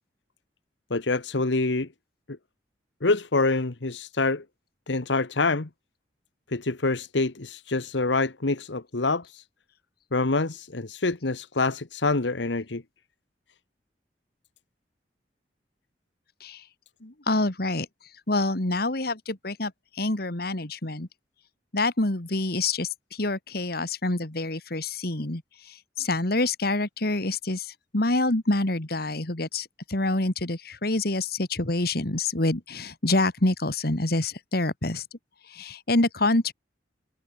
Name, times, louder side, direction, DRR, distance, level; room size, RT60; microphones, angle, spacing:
voice 1, 0.9-1.9 2.3-2.4 3.0-4.4 4.9-5.7 6.5-9.4 10.1-12.8, left 3 dB, 85° left, 1.3 m, -26 dB
voice 2, 17.0-17.9 18.3-21.1 21.7-35.0 35.5-36.5, left 2 dB, 55° left, 2.3 m, -27 dB
head